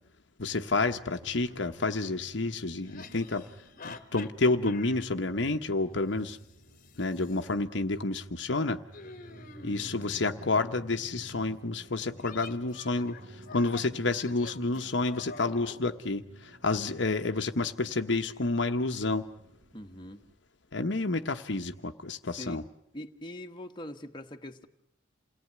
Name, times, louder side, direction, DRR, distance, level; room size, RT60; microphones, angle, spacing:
voice 1, 0.4-3.4 3.8-6.4 7.0-8.8 9.6-19.3 20.7-22.6, left 3 dB, 65° left, 6 dB, 1.1 m, -29 dB
sound 1, 1.2-20.3, right 1 dB, 65° right, 2.0 m, -53 dB
sound 2, 1.5-1.6 2.8-5.1 6.3-7.5 8.9-10.4 12.2-15.8, left 4 dB, 45° left, 1.4 m, -48 dB
voice 2, 19.7-20.2 22.4-22.6 22.9-24.7, left 1 dB, 25° left, 3 dB, 1.4 m, -42 dB
28.5 x 18.5 x 9.5 m, 0.75 s
head